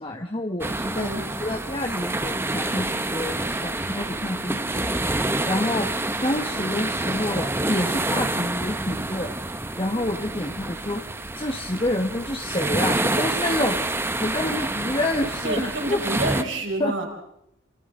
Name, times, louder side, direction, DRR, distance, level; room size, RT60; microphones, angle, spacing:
voice 1, 0.0-4.8 5.4-5.9 6.2-9.3 9.8-11.0 11.4-13.8 14.2-16.0 16.8-16.9, left 1 dB, 25° left, 2 dB, 1.5 m, -28 dB
sound 1, 0.6-16.4, right 2 dB, 10° right, 0.9 m, -28 dB
voice 2, 0.9-1.3 15.4-17.1, right 2 dB, 70° right, 1 dB, 5.3 m, -28 dB
28.5 x 27.0 x 3.9 m, 0.78 s
head